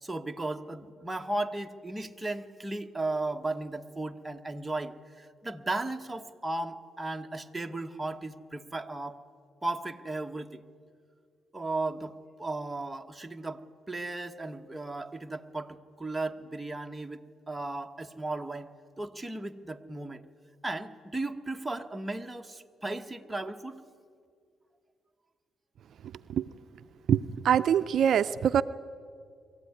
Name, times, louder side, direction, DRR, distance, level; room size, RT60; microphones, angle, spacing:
voice 1, 0.0-9.2 9.6-10.6 11.5-17.2 17.5-18.7 19.0-20.2 20.6-23.8, right 2 dB, 10° right, 4 dB, 1.2 m, -35 dB
voice 2, 27.1-28.6, right 9 dB, 65° right, 12 dB, 0.5 m, -24 dB
23.0 x 15.5 x 9.7 m, 2.2 s
cardioid pair, 90°, 0 cm